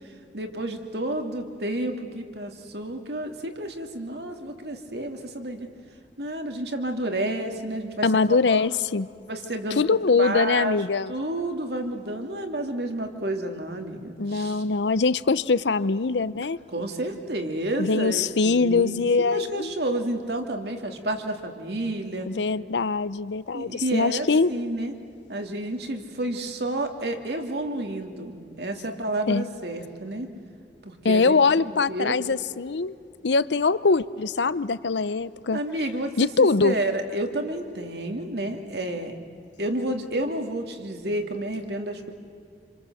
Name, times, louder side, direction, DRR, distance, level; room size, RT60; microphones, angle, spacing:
voice 1, 0.3-5.7 6.2-8.6 9.3-9.8 10.2-10.8 11.1-14.6 16.7-22.3 23.5-24.9 25.3-30.3 30.8-31.4 31.6-32.2 35.5-39.1 39.6-42.1, right 1 dB, 65° right, 4 dB, 2.5 m, -30 dB
voice 2, 8.0-9.1 9.8-11.1 14.2-16.6 17.8-19.7 22.3-24.5 29.3-29.5 31.0-32.9 33.2-35.6 36.2-36.8, left 4 dB, 80° left, 16 dB, 0.7 m, -22 dB
28.0 x 26.5 x 7.9 m, 2.5 s
head